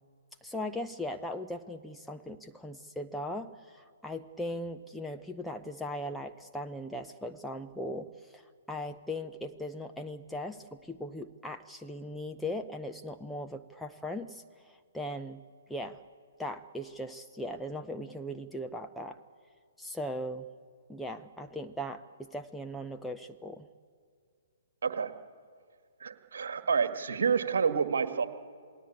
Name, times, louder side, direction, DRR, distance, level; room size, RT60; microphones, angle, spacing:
voice 1, 0.4-8.4 8.7-15.4 15.7-16.0 16.4-19.2 19.8-20.5 20.9-23.7, left 1 dB, ahead, 4 dB, 0.8 m, -39 dB
voice 2, 26.0-28.3, right 6 dB, 60° right, 9 dB, 1.8 m, -28 dB
28.0 x 18.5 x 8.6 m, 2.2 s
figure-of-eight pair, 125°, 0 cm